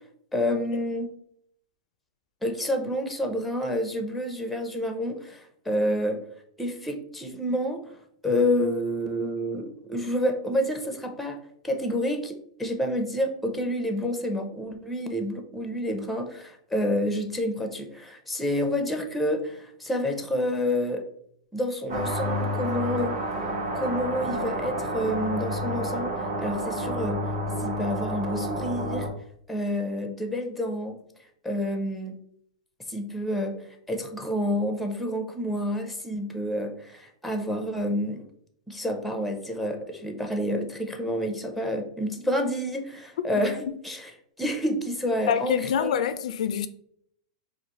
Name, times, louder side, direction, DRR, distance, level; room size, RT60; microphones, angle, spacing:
voice 1, 0.3-1.1 2.4-6.2 6.6-7.8 8.2-11.4 11.6-21.0 21.5-23.2 23.7-26.1 26.4-27.2 27.6-29.1 29.5-31.0 31.4-32.2 32.9-33.6 33.9-38.3 38.7-44.1 44.4-45.9, equal, ahead, 0.6 m, -28 dB
sound 1, 21.9-29.1, equal, 60° right, 1.2 m, -30 dB
voice 2, 43.3-43.7 45.3-46.7, left 8 dB, 70° left, 0.3 m, -26 dB
4.9 x 2.4 x 3.0 m
hypercardioid pair, 140°, 4 cm